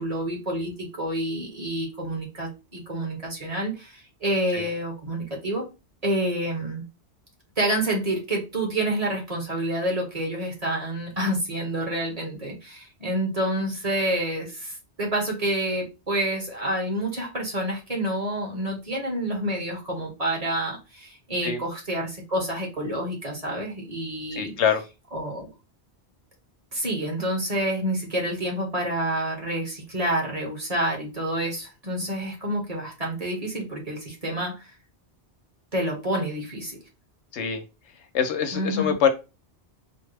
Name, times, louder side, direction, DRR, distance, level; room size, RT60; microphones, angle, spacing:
voice 1, 0.0-5.6 6.0-6.8 7.6-24.5 25.1-25.5 26.7-34.7 35.7-36.8 38.5-38.9, right 1 dB, 35° right, 1.3 m, -28 dB
voice 2, 24.3-24.8 37.3-37.6 38.1-39.1, left 7 dB, 80° left, 1.0 m, -24 dB
4.4 x 2.3 x 3.3 m
omnidirectional pair, 1.2 m